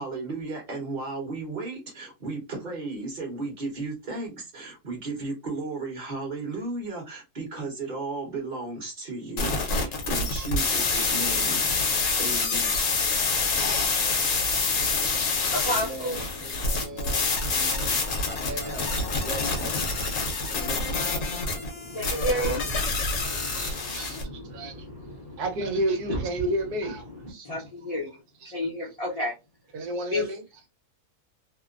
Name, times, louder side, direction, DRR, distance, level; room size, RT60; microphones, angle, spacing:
voice 1, 0.0-12.9, right 3 dB, 35° right, 0.9 m, -35 dB
sound 1, 9.4-24.2, left 3 dB, 60° left, 1.0 m, -27 dB
voice 2, 14.6-28.2 28.4-29.4 30.1-30.3, left 1 dB, 40° left, 0.5 m, -35 dB
voice 3, 16.4-18.0 18.4-19.0 19.2-19.8 20.5-20.8 23.3-24.2 24.5-24.7 25.4-27.5 29.7-30.4, right 1 dB, 80° right, 1.2 m, -32 dB
2.9 x 2.0 x 2.4 m
omnidirectional pair, 1.7 m